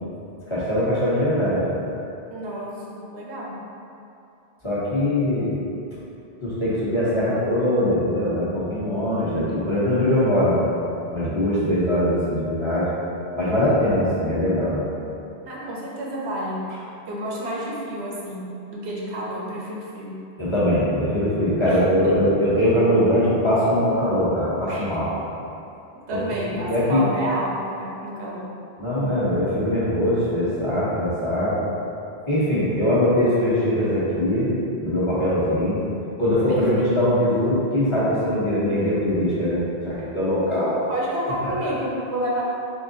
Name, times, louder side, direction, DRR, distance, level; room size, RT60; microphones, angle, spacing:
voice 1, 0.5-1.6 4.6-5.5 6.4-10.7 11.1-12.9 13.4-14.8 20.4-25.1 26.1-26.2 26.7-27.0 28.8-31.6 32.3-34.5 34.8-35.8 36.2-40.8 41.4-41.7, left 1 dB, 30° left, -10 dB, 0.8 m, -21 dB
voice 2, 2.3-3.6 15.5-16.7 17.1-20.2 21.7-21.8 22.0-22.1 24.7-25.0 25.9-28.5 36.5-36.9 40.9-42.4, right 1 dB, 85° right, -4 dB, 1.0 m, -30 dB
3.7 x 3.4 x 2.6 m, 2.7 s
omnidirectional pair, 1.1 m